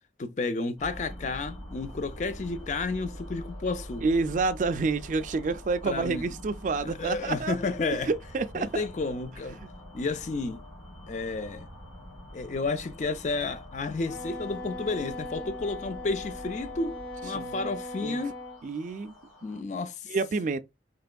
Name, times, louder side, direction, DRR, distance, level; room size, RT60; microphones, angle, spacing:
voice 1, 0.2-4.0 5.9-6.3 6.8-8.1 8.5-9.6 9.9-10.6 11.1-11.7 12.3-18.4 19.4-20.2, left 3 dB, 40° left, 0.4 m, -31 dB
sound 1, 0.8-19.6, equal, 20° left, 1.6 m, -45 dB
voice 2, 4.0-7.6 8.1-8.9 9.6-9.7 17.3-17.7 18.0-18.2 18.6-19.1 20.1-20.6, right 4 dB, 45° right, 0.3 m, -28 dB
Wind instrument woodwind instrument, 14.0-18.6, left 2 dB, 80° left, 1.6 m, -39 dB
3.4 x 2.9 x 2.2 m
head